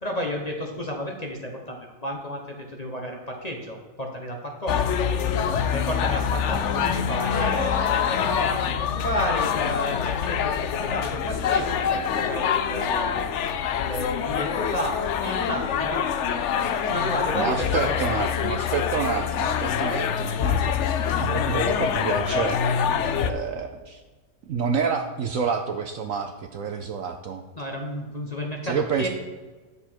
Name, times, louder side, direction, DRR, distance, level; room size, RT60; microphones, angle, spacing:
voice 1, 0.0-5.0 5.7-13.3 13.8-16.0 16.8-18.0 27.6-29.1, left 1 dB, 30° left, 1 dB, 0.8 m, -31 dB
sound 1, 4.7-23.3, left 7 dB, 70° left, 0.7 m, -25 dB
voice 2, 17.3-22.6 23.2-24.0 24.5-27.4 28.6-29.1, right 6 dB, 65° right, 6 dB, 0.8 m, -28 dB
9.7 x 6.8 x 4.4 m, 1.3 s
omnidirectional pair, 1.8 m